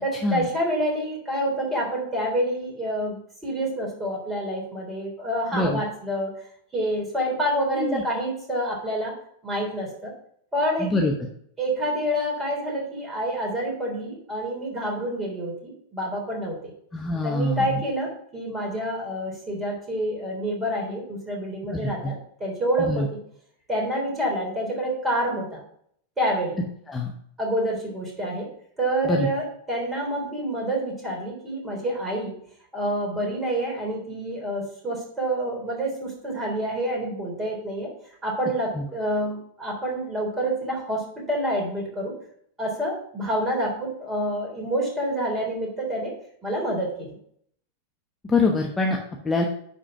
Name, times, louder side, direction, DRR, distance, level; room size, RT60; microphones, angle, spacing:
voice 1, 0.0-6.3 6.7-9.1 9.4-10.1 10.5-10.9 11.6-16.7 17.2-22.1 22.4-23.1 23.7-25.6 26.2-26.6 27.4-28.5 28.8-32.3 32.7-37.9 38.2-42.1 42.6-46.1 46.4-47.2, equal, 15° right, -1 dB, 3.7 m, -27 dB
voice 2, 10.8-11.1 16.9-17.8 21.7-22.1 22.8-23.1 26.9-27.1 29.0-29.3 38.7-38.8 48.2-49.0 49.2-49.5, left 2 dB, 15° left, 0 dB, 1.1 m, -24 dB
10.0 x 4.3 x 5.8 m, 0.67 s
figure-of-eight pair, 90°, 0 cm